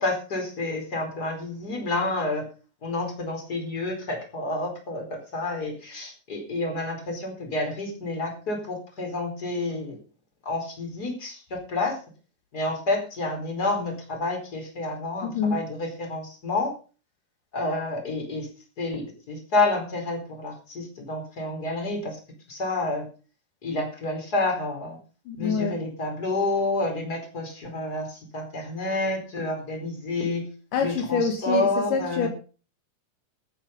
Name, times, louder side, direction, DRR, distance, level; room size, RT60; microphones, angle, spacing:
voice 1, 0.0-2.4 2.8-10.0 10.4-12.0 12.5-16.7 17.5-18.5 18.8-22.2 22.5-23.1 23.6-25.0 25.4-30.5 30.8-32.3, left 2 dB, 25° left, 4.9 m, -29 dB
voice 2, 15.2-15.6 25.3-25.8 30.7-32.3, left 5 dB, 75° left, 3.0 m, -26 dB
14.5 x 9.3 x 5.4 m
omnidirectional pair, 3.9 m